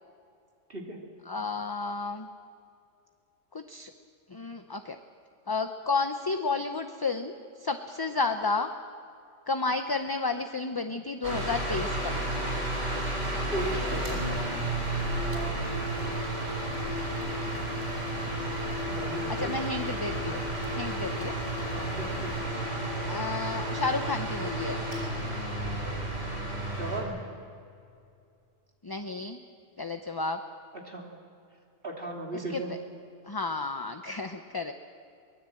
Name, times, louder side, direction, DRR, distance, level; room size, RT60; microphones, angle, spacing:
voice 1, 1.3-2.3 3.5-3.9 4.3-5.0 5.5-8.7 9.5-12.1 19.3-20.4 20.7-21.3 23.1-24.9 28.8-29.4 29.8-30.4 32.3-32.8 33.2-34.7, left 3 dB, 25° left, 7 dB, 0.6 m, -32 dB
sound 1, 11.2-27.0, right 1 dB, 80° right, 4.8 m, -32 dB
voice 2, 13.5-14.4 15.3-15.8 18.9-19.5 21.7-22.4 26.7-27.2 30.8-31.0 31.8-32.7, right 1 dB, 50° right, 0 dB, 3.2 m, -36 dB
sound 2, 13.6-22.4, equal, 10° right, 3.5 m, -45 dB
23.5 x 20.0 x 7.7 m, 2.5 s
omnidirectional pair, 1.2 m